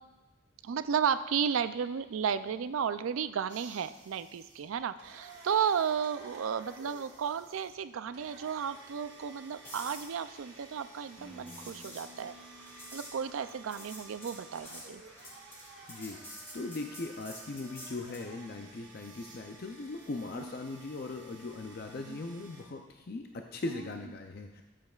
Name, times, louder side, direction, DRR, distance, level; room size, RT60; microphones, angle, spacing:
voice 1, 0.6-12.3 12.9-15.0 20.4-20.5 21.9-22.2, right 7 dB, 85° right, 13 dB, 0.4 m, -33 dB
sound 1, 3.5-22.6, right 3 dB, 55° right, 1.8 m, -53 dB
sound 2, 9.6-18.3 22.5-22.7, equal, 15° left, 2.2 m, -50 dB
sound 3, 11.2-15.0, left 1 dB, 65° left, 3.3 m, -56 dB
voice 2, 15.9-16.2 16.5-24.6, left 2 dB, 50° left, 4 dB, 0.5 m, -39 dB
13.0 x 7.5 x 2.4 m, 1.1 s
head